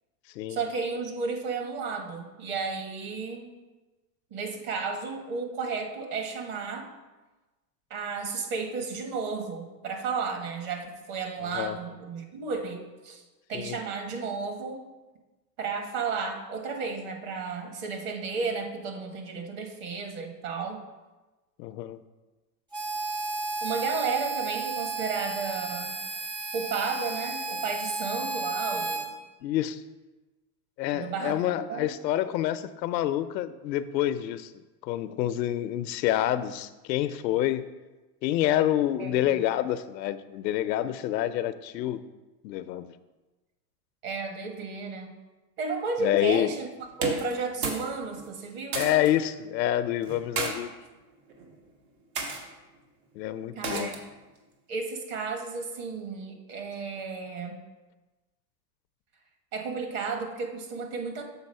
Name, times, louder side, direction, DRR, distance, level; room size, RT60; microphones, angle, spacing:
voice 1, 0.5-3.5 4.3-6.9 7.9-13.2 13.5-14.8 15.6-20.8 23.6-25.9 26.5-29.1 30.9-31.4 31.7-31.9 39.0-39.4 44.0-45.1 45.6-46.7 47.0-48.9 53.5-53.9 54.7-57.6 59.5-61.2, right 4 dB, 50° right, 4 dB, 1.4 m, -33 dB
voice 2, 11.4-11.8 13.5-13.8 21.6-22.0 29.4-29.8 30.8-34.5 34.8-37.6 38.2-42.0 42.4-42.9 46.0-46.5 48.7-50.7 53.2-53.9, left 12 dB, 90° left, 12 dB, 0.6 m, -27 dB
Harmonica, 22.7-29.1, right 3 dB, 10° right, 0.3 m, -33 dB
sound 1, 46.9-47.9 48.2-49.1 50.0-50.5 51.3-51.6 52.1-52.4 53.6-54.1, right 4 dB, 75° right, 1.6 m, -32 dB
7.2 x 4.0 x 5.4 m, 1.2 s
supercardioid pair, 130°, 49 cm